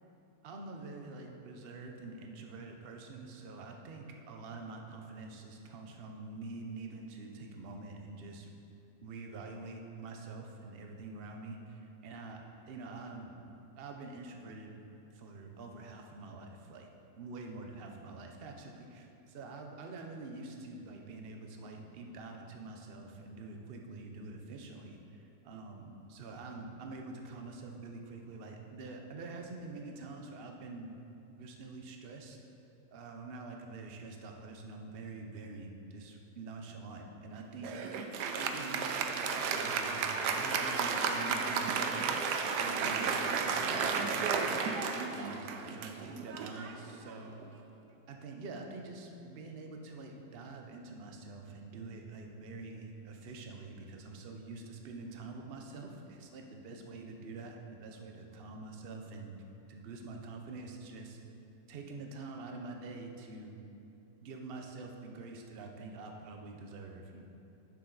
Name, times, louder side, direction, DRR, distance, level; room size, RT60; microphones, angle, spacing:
voice 1, 0.4-8.5 9.0-13.3 13.8-14.7 15.1-16.9 17.2-30.9 31.4-32.4 32.9-37.8 38.4-42.2 42.6-44.6 45.1-47.4 48.1-59.3 59.7-61.2 61.7-63.6 64.2-67.2, right 3 dB, 50° right, 2 dB, 0.7 m, -46 dB
Applause, 37.6-47.4, right 5 dB, 75° right, 1.2 m, -33 dB
9.6 x 6.7 x 3.9 m, 2.8 s
omnidirectional pair, 1.9 m